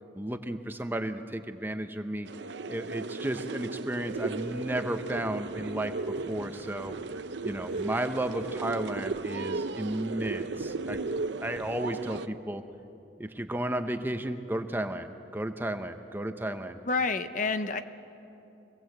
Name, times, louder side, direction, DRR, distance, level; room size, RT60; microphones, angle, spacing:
voice 1, 0.1-2.3 2.7-7.0 7.4-11.0 11.4-12.6 13.2-16.8, right 1 dB, 10° right, 7 dB, 0.8 m, -33 dB
sound 1, 2.2-12.3, right 3 dB, 75° right, 0.6 m, -35 dB
sound 2, 3.9-12.0, right 1 dB, 45° right, 2.4 m, -53 dB
voice 2, 16.9-17.8, left 4 dB, 45° left, 9 dB, 0.7 m, -28 dB
25.0 x 18.0 x 7.9 m, 2.9 s
head